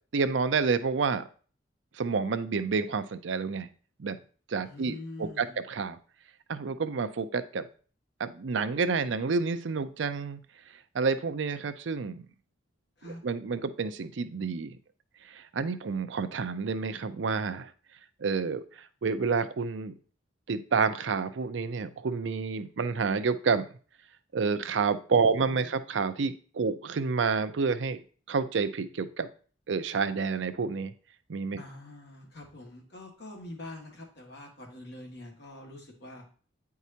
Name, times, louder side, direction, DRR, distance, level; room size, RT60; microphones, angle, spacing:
voice 1, 0.1-1.2 2.0-3.7 4.0-4.2 4.5-6.0 6.5-7.7 8.2-10.4 10.9-12.3 13.0-14.8 15.3-17.7 18.2-18.6 19.0-19.9 20.5-23.7 24.3-28.0 28.3-29.3 29.7-30.9 31.3-31.6, right 5 dB, 75° right, 12 dB, 0.5 m, -29 dB
voice 2, 4.6-5.6 13.0-13.2 25.1-25.8 31.6-36.3, left 2 dB, 65° left, 0 dB, 1.8 m, -45 dB
9.2 x 4.7 x 2.8 m, 0.41 s
head